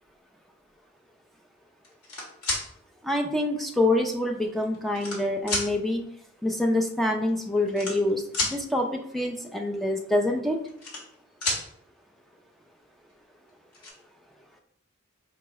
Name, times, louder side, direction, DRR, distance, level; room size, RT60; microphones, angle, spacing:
sound 1, 1.8-2.6 3.6-3.7 4.5-5.2 5.5-5.7 6.8-6.9 7.1-7.3 7.7-8.5 10.4-11.2 11.4-11.6 13.1-13.2 13.5-13.9, left 2 dB, 90° left, 1.5 m, -30 dB
voice 1, 3.0-6.1 6.4-10.6, left 1 dB, ahead, 2 dB, 0.3 m, -26 dB
4.7 x 2.0 x 4.6 m, 0.70 s
head